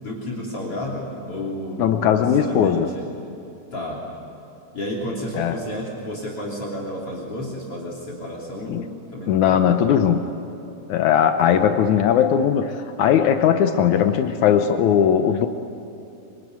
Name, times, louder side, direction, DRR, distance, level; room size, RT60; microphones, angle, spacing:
voice 1, 0.0-3.1 3.7-4.0 4.7-9.9 11.4-11.7, left 1 dB, 50° left, -2 dB, 4.0 m, -31 dB
voice 2, 1.8-2.9 5.4-5.5 8.7-8.8 9.3-10.2 10.9-15.5, left 9 dB, 75° left, 7 dB, 2.3 m, -18 dB
25.0 x 24.5 x 9.4 m, 2.8 s
omnidirectional pair, 3.5 m